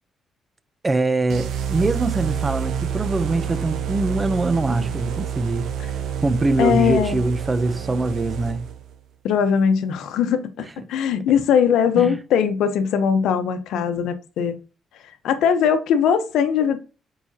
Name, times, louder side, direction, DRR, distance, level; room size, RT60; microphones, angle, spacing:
voice 1, 0.8-5.7 6.2-8.7 12.0-12.2, right 2 dB, 25° right, 0.6 m, -23 dB
sound 1, 1.3-8.9, right 8 dB, 80° right, 0.9 m, -28 dB
voice 2, 6.6-7.2 9.2-14.5 15.2-16.8, left 7 dB, 85° left, 0.8 m, -20 dB
7.2 x 4.9 x 2.8 m
cardioid pair, 100°, 0 cm